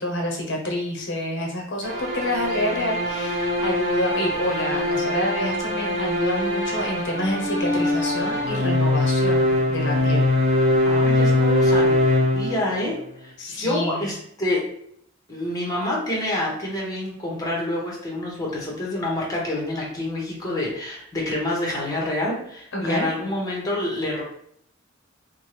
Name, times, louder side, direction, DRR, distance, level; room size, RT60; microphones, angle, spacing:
voice 1, 0.0-10.3 13.4-14.1 22.7-23.1, left 1 dB, 60° left, 1 dB, 0.8 m, -28 dB
sound 1, 1.8-13.0, left 1 dB, 50° right, 1.2 m, -22 dB
voice 2, 10.9-11.9 12.3-14.6 15.3-24.2, left 1 dB, 20° left, -3 dB, 1.0 m, -27 dB
4.3 x 2.2 x 3.2 m, 0.70 s
head